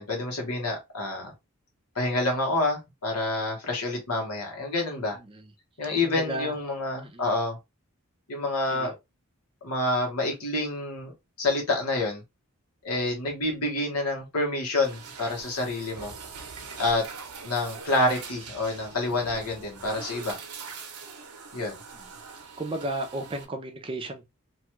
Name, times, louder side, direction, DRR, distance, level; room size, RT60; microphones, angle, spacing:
voice 1, 0.0-1.3 1.9-5.2 5.8-7.6 8.3-8.9 9.6-11.1 11.4-12.2 12.8-16.1 16.8-17.0 17.4-20.4 21.5-21.8, left 2 dB, 90° left, 1.2 m, -28 dB
voice 2, 5.1-5.5 6.0-6.6 7.0-7.3 8.7-8.9 22.0-22.1 22.6-24.2, right 1 dB, 25° right, 0.5 m, -34 dB
sound 1, 14.8-23.4, right 5 dB, 90° right, 0.7 m, -43 dB
3.0 x 2.3 x 3.0 m
head